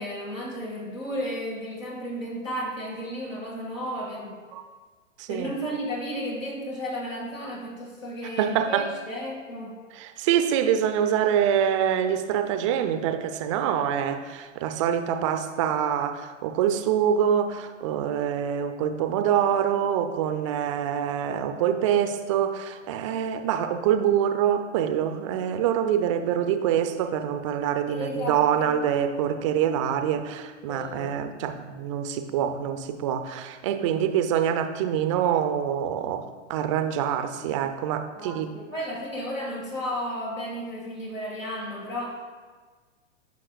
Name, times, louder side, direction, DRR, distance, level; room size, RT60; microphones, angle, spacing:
voice 1, 0.0-4.4 5.3-9.8 27.9-28.8 30.7-31.2 33.7-34.1 38.2-42.3, equal, 80° left, -3 dB, 2.0 m, -33 dB
voice 2, 5.2-5.5 8.4-8.9 9.9-38.5, right 9 dB, 25° right, 8 dB, 0.4 m, -25 dB
15.0 x 5.9 x 2.4 m, 1.5 s
figure-of-eight pair, 105°, 38 cm